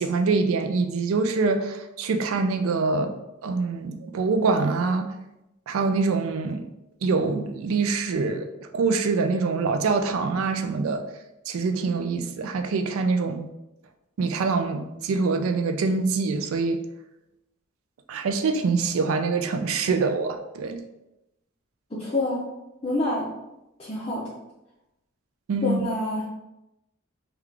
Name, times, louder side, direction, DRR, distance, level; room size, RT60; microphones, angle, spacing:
voice 1, 0.0-3.1 3.4-5.1 5.7-6.6 7.0-8.5 8.7-11.0 11.5-13.4 14.2-16.8 18.1-20.8 25.5-25.8, right 4 dB, 70° right, 6 dB, 0.3 m, -24 dB
voice 2, 21.9-22.4 22.8-23.3 23.8-24.2 25.6-26.2, left 1 dB, 25° left, -7 dB, 0.5 m, -27 dB
3.6 x 2.3 x 3.3 m, 0.92 s
head